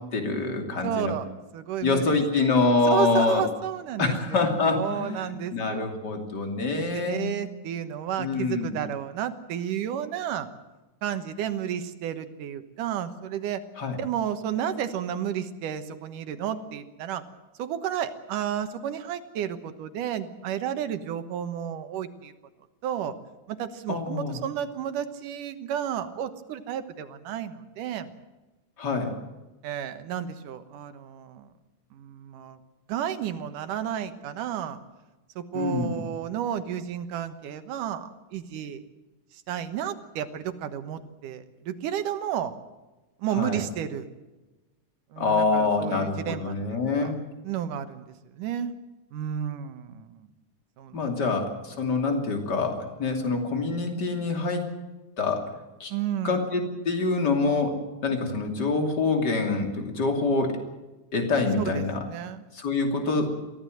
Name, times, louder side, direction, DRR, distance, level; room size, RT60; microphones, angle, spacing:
voice 1, 0.1-1.1 1.8-3.4 4.0-7.3 8.2-8.8 13.8-14.0 23.9-24.4 28.8-29.1 35.5-36.0 43.4-43.6 45.2-47.2 50.9-54.7 55.2-55.5 55.8-55.9 56.2-57.7 58.0-60.6 61.1-62.0 62.6-63.3, left 3 dB, 35° left, 4 dB, 3.2 m, -25 dB
voice 2, 0.8-2.5 2.8-4.4 4.7-5.9 6.9-10.5 11.0-13.6 14.0-17.2 17.6-22.3 22.8-23.1 23.5-28.1 29.6-31.5 31.9-32.6 32.9-34.8 35.4-38.8 39.3-42.6 43.2-44.1 45.1-47.1 47.4-48.7 49.1-50.3 50.8-51.3 55.9-56.4 61.6-62.4, right 9 dB, 85° right, 10 dB, 2.8 m, -32 dB
23.0 x 16.0 x 7.9 m, 1.1 s
omnidirectional pair, 3.6 m